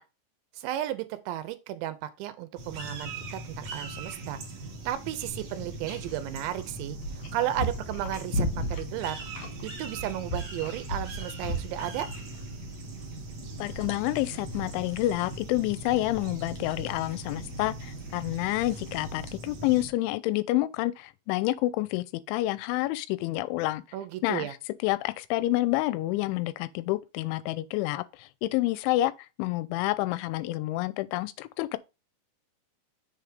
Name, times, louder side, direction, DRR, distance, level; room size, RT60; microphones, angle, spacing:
voice 1, 0.6-4.4 4.9-9.2 9.6-12.1 23.9-24.5, right 13 dB, 85° right, 2.9 m, -34 dB
sound 1, 2.6-19.9, right 2 dB, 55° right, 1.8 m, -41 dB
sound 2, 5.2-19.3, equal, 70° left, 1.4 m, -38 dB
voice 2, 13.6-23.8 24.2-24.6 24.8-29.1 29.4-31.8, left 17 dB, 90° left, 3.0 m, -28 dB
7.2 x 3.4 x 5.0 m
omnidirectional pair, 5.3 m